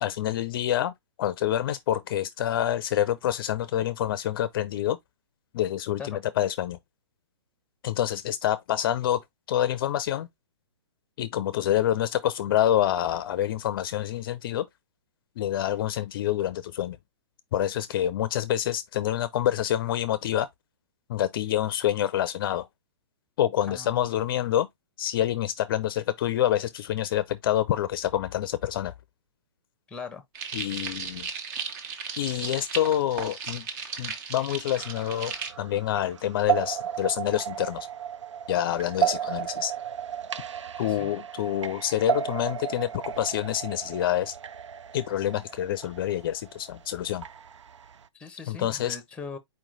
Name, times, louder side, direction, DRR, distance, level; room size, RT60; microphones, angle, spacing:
voice 1, 0.0-0.9 1.2-5.0 5.5-6.8 7.8-9.2 9.5-10.3 11.2-14.6 15.4-17.0 17.5-20.5 21.1-22.7 23.4-24.7 25.0-28.9 30.5-31.3 32.2-33.6 34.0-37.9 38.5-39.7 40.8-44.3 44.9-47.2 48.5-49.0, left 11 dB, 50° left, 0.5 m, -27 dB
voice 2, 23.7-24.1 29.9-30.2 40.8-41.1 48.1-49.4, left 5 dB, 5° left, 0.8 m, -40 dB
sound 1, 30.4-35.5, right 6 dB, 40° right, 1.0 m, -36 dB
sound 2, 34.8-48.1, right 9 dB, 85° right, 0.5 m, -34 dB
4.5 x 3.0 x 3.8 m
hypercardioid pair, 130°, 15 cm